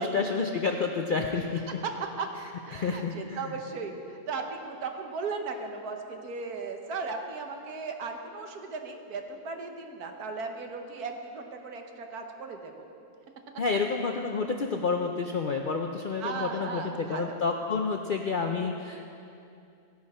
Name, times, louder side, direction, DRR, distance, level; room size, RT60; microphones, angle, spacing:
voice 1, 0.0-1.6 2.7-3.5 13.6-19.0, left 4 dB, 60° left, 3 dB, 0.5 m, -29 dB
voice 2, 2.6-12.8 16.2-17.4, right 4 dB, 80° right, 4 dB, 1.6 m, -36 dB
15.5 x 10.5 x 4.3 m, 2.6 s
omnidirectional pair, 1.6 m